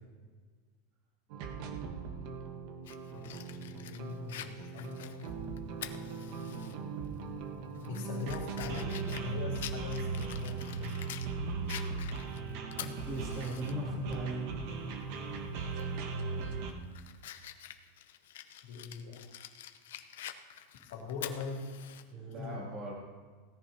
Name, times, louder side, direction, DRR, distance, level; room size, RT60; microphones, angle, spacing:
sound 1, 1.3-16.7, right 5 dB, 50° right, 1.3 m, -39 dB
Fire, 2.9-6.7 7.1-7.2 7.7-11.3 11.7-13.7 14.1-14.2 15.7-16.0 16.4-22.0, left 11 dB, 85° left, 0.8 m, -47 dB
voice 1, 3.1-5.2 7.8-11.0 18.6-19.2 20.8-21.7 22.3-22.6, left 5 dB, 70° left, -1 dB, 2.7 m, -42 dB
voice 2, 12.8-14.5 22.1-22.9, right 1 dB, 30° right, -3 dB, 2.7 m, -39 dB
17.5 x 14.0 x 2.9 m, 1.5 s
supercardioid pair, 160°, 0 cm